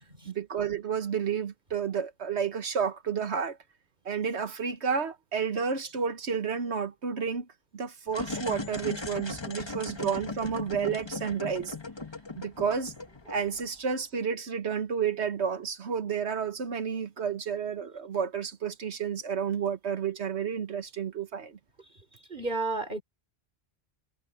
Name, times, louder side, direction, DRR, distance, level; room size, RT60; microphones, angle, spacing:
voice 1, 0.2-3.6 4.0-7.5 7.7-11.7 12.4-12.9 13.3-21.6, right 6 dB, 85° right, 1.6 m, -31 dB
sound 1, 8.1-13.9, left 3 dB, 25° left, 1.3 m, -38 dB
voice 2, 22.3-23.0, right 3 dB, 50° right, 4.8 m, -31 dB
omnidirectional pair, 1.1 m